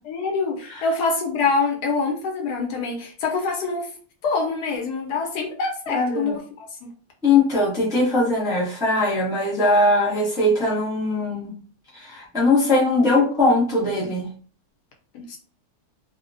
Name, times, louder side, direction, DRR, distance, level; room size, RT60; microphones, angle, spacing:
voice 1, 0.1-3.9 4.2-6.9 15.1-15.4, left 4 dB, 80° left, 2 dB, 1.2 m, -25 dB
voice 2, 5.9-6.3 7.2-11.5 11.9-14.3, left 2 dB, 5° right, -6 dB, 0.4 m, -20 dB
2.8 x 2.0 x 2.5 m, 0.43 s
omnidirectional pair, 1.7 m